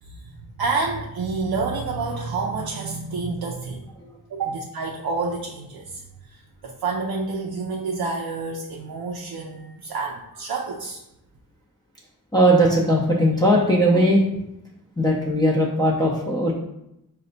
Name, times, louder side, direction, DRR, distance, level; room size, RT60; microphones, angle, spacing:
voice 1, 0.0-3.9 4.3-11.0, right 4 dB, 75° right, 0 dB, 0.5 m, -29 dB
voice 2, 12.3-14.2 15.0-16.5, equal, 10° left, -4 dB, 0.5 m, -18 dB
4.0 x 2.2 x 3.9 m, 0.85 s
wide cardioid pair, 85°, 37 cm